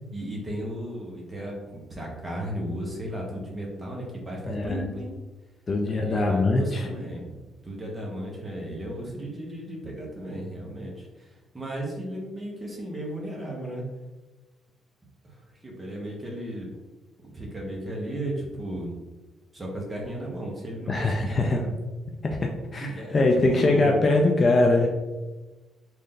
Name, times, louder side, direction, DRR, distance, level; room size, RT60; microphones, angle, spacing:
voice 1, 0.1-5.2 5.9-7.4 7.6-13.8 15.2-16.7 17.3-19.0 19.5-21.7 22.8-24.0 24.7-24.9, right 1 dB, 15° right, -2 dB, 0.8 m, -35 dB
voice 2, 4.4-4.9 5.7-6.9 20.9-21.6 22.4-24.9, left 2 dB, 25° left, 1 dB, 0.3 m, -22 dB
3.2 x 2.6 x 3.7 m, 1.1 s
cardioid pair, 165°, 0 cm